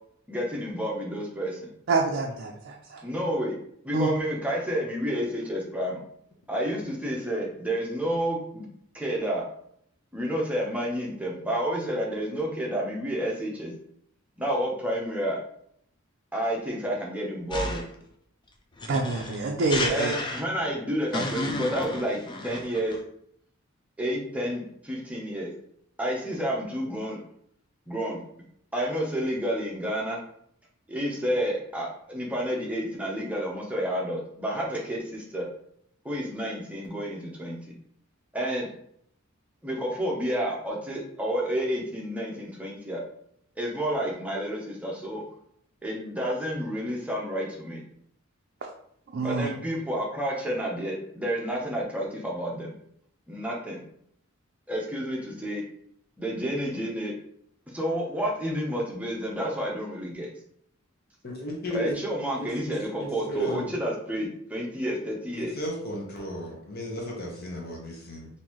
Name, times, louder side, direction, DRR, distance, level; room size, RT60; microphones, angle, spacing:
voice 1, 0.3-1.6 3.0-3.5 3.8-6.0 6.5-8.6 8.9-9.4 10.1-13.7 14.4-15.4 16.3-17.8 19.9-23.0 24.0-25.5 26.0-27.2 27.9-28.2 28.7-30.2 30.9-35.5 36.0-37.6 38.3-38.7 39.6-43.0 43.6-45.2 45.8-47.8 49.2-52.7 53.3-53.8 54.7-55.6 56.2-57.1 57.7-60.3 61.7-65.5, equal, 5° right, -3 dB, 0.7 m, -30 dB
voice 2, 1.9-3.0 3.9-4.1 18.9-20.1 49.1-49.5, right 3 dB, 50° right, 0 dB, 0.4 m, -26 dB
sound 1, 17.5-18.0 18.8-20.7 21.1-23.0, left 2 dB, 20° left, 0.4 m, -32 dB
voice 3, 61.2-62.0 62.4-63.7 65.3-68.3, equal, 50° left, -2 dB, 0.9 m, -34 dB
3.8 x 2.7 x 3.0 m, 0.68 s
head